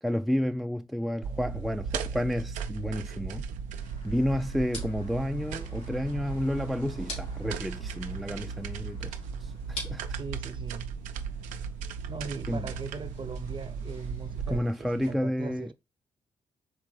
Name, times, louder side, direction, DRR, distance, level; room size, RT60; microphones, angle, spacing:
voice 1, 0.0-3.5 4.0-10.0 12.5-12.7 14.5-15.7, equal, ahead, 0.3 m, -31 dB
sound 1, 1.2-14.6, right 6 dB, 80° right, 0.4 m, -36 dB
sound 2, 3.7-15.1, left 2 dB, 90° left, 2.6 m, -48 dB
voice 2, 10.2-10.9 12.1-15.7, right 4 dB, 40° right, 0.7 m, -40 dB
4.4 x 3.3 x 3.2 m
hypercardioid pair, 45°, 13 cm